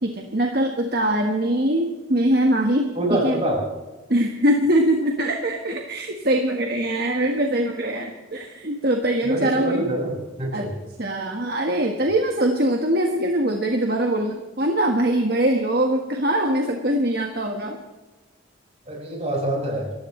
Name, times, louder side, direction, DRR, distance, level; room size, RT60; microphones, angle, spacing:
voice 1, 0.0-3.4 4.1-9.9 10.5-10.7 11.0-17.8, right 1 dB, 50° right, 2 dB, 1.5 m, -22 dB
voice 2, 2.9-3.6 9.2-10.1 10.4-10.7 18.9-19.9, right 1 dB, 30° right, -1 dB, 6.1 m, -25 dB
28.5 x 15.0 x 3.3 m, 1.2 s
head